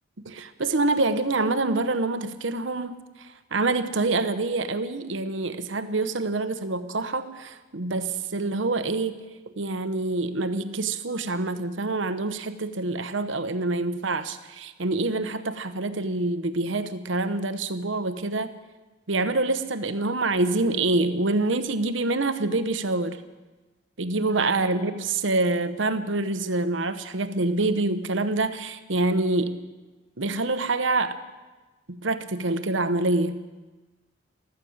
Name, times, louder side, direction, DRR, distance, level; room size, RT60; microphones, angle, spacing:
voice 1, 0.2-9.2 9.6-18.5 19.1-23.2 24.0-29.6 30.2-31.2 31.9-33.4, right 2 dB, 75° right, 11 dB, 1.0 m, -26 dB
14.5 x 13.5 x 7.2 m, 1.2 s
head